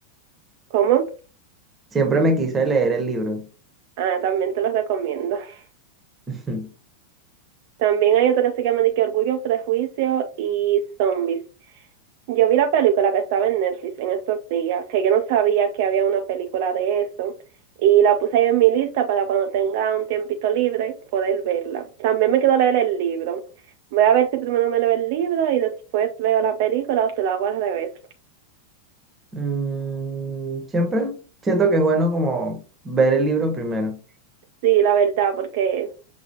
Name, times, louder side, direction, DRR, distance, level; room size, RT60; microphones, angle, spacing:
voice 1, 0.7-1.0 4.0-5.6 7.8-11.4 12.3-17.3 17.8-23.4 23.9-27.9 34.6-35.9, right 9 dB, 50° right, 0.4 m, -21 dB
voice 2, 1.9-3.5 6.3-6.7 29.3-31.1 31.4-34.0, right 2 dB, 20° right, 1.0 m, -22 dB
6.0 x 2.3 x 2.8 m
figure-of-eight pair, 90°, 0 cm